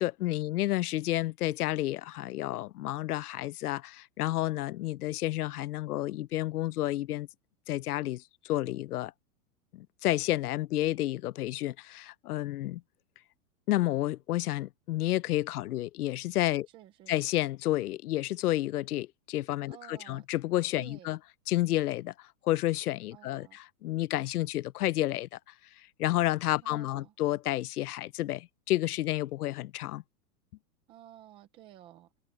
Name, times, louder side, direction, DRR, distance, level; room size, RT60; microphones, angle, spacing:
voice 1, 0.0-7.3 7.7-9.1 9.7-12.8 13.7-16.7 17.1-21.2 21.5-25.4 26.0-30.0, left 15 dB, 75° left, 0.7 m, -30 dB
voice 2, 16.7-17.1 19.7-20.3 20.8-21.1 23.1-23.6 26.6-27.1 30.9-32.1, right 12 dB, 10° right, 0.6 m, -53 dB
supercardioid pair, 170°, 46 cm